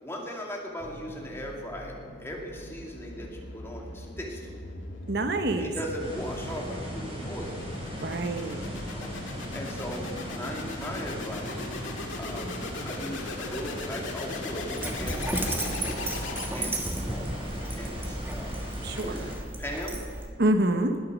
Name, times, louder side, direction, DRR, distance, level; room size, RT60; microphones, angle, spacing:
voice 1, 0.0-4.6 5.6-7.5 8.7-11.6 12.2-12.5 12.8-15.3 15.7-16.0 16.5-18.6 19.0-19.3 19.6-20.0, equal, 15° left, -1 dB, 2.4 m, -38 dB
sound 1, 0.8-16.9, left 2 dB, 80° left, 1.8 m, -39 dB
voice 2, 5.1-5.7 8.0-8.6 18.8-19.3 20.4-21.0, right 1 dB, 55° right, 7 dB, 0.9 m, -26 dB
sound 2, 6.0-19.4, equal, 30° right, 4.7 m, -39 dB
Dog, 14.8-20.3, right 1 dB, 10° right, 1.3 m, -34 dB
20.0 x 8.5 x 6.3 m, 2.1 s
head